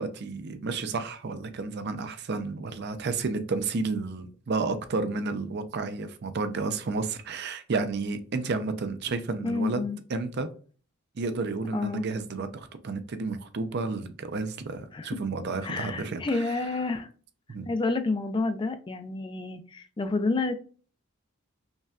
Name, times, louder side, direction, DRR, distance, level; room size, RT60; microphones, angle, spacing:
voice 1, 0.0-10.5 11.2-16.5 17.5-17.7, right 3 dB, 50° right, 0.5 m, -31 dB
voice 2, 9.4-10.0 11.7-12.0 14.9-15.1 15.6-17.1 17.7-20.5, left 3 dB, 20° left, 0.3 m, -29 dB
5.3 x 2.2 x 2.4 m
head